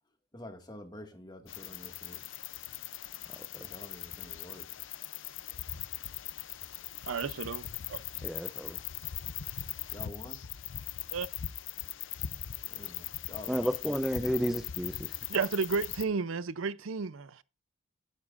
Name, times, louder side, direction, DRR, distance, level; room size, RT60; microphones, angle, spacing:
voice 1, 0.3-2.2 3.5-4.6 9.9-10.4 12.6-14.0, left 1 dB, 20° left, 1.9 m, -47 dB
sound 1, 1.5-16.0, left 12 dB, 70° left, 0.6 m, -40 dB
voice 2, 7.1-8.0 11.1-11.3 15.3-17.4, right 5 dB, 80° right, 0.6 m, -32 dB
voice 3, 8.2-8.8 13.5-15.2, equal, ahead, 0.5 m, -32 dB
17.0 x 9.5 x 2.5 m
head